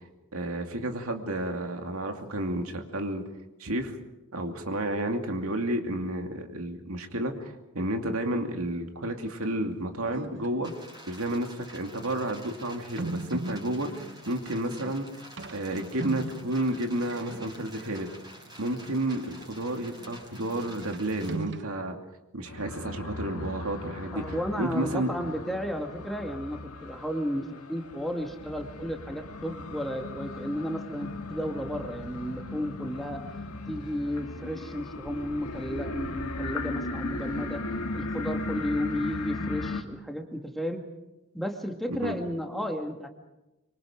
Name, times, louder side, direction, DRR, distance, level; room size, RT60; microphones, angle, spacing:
voice 1, 0.3-3.2 3.6-4.0 4.3-10.7 11.1-15.1 15.5-18.1 18.6-22.0 22.3-25.1 41.9-42.2, right 1 dB, 70° right, 4 dB, 2.6 m, -31 dB
sound 1, 9.1-9.6 10.1-10.7 11.4-11.5 13.0-21.6, right 3 dB, 55° right, 1.0 m, -40 dB
sound 2, 10.6-21.4, equal, 20° right, 5.6 m, -49 dB
sound 3, 22.5-39.8, left 2 dB, 85° left, 2.0 m, -37 dB
voice 2, 24.1-33.2 33.7-40.9 41.3-43.1, equal, ahead, 3 dB, 2.0 m, -33 dB
26.0 x 24.5 x 5.1 m, 0.98 s
head